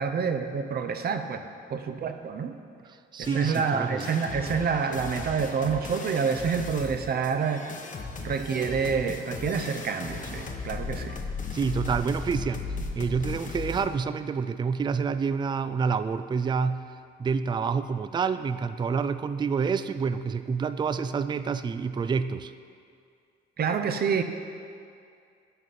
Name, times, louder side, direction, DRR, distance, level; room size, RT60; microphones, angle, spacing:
voice 1, 0.0-2.6 3.2-7.7 8.2-11.2 23.6-24.2, right 6 dB, 50° right, 7 dB, 0.7 m, -28 dB
voice 2, 3.1-4.2 11.5-12.7 12.9-16.8 17.2-22.5, right 5 dB, 25° right, 12 dB, 0.3 m, -28 dB
sound 1, 3.2-13.9, left 4 dB, 40° left, 1.1 m, -37 dB
11.0 x 4.1 x 7.6 m, 2.3 s
cardioid pair, 90°, 20 cm